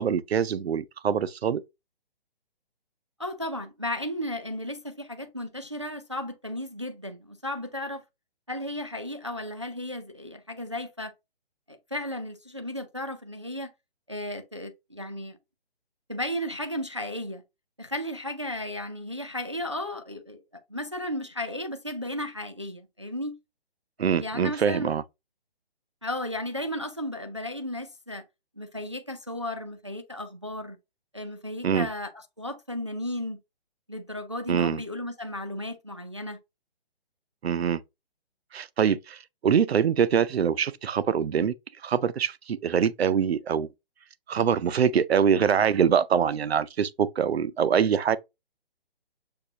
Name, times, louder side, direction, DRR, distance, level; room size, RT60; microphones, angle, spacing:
voice 1, 0.0-1.6 24.0-25.0 31.6-31.9 34.5-34.8 37.4-37.8 38.5-39.2 39.4-41.5 41.8-43.7 44.3-48.2, right 7 dB, 85° right, 0.6 m, -24 dB
voice 2, 3.2-8.0 8.5-11.1 11.7-13.7 14.1-15.4 16.1-17.4 17.8-20.4 20.7-23.4 24.0-24.9 26.0-28.2 28.6-30.8 31.1-33.4 33.9-36.4, left 1 dB, 30° right, 0.4 m, -34 dB
6.6 x 2.7 x 2.7 m
hypercardioid pair, 180°, 31 cm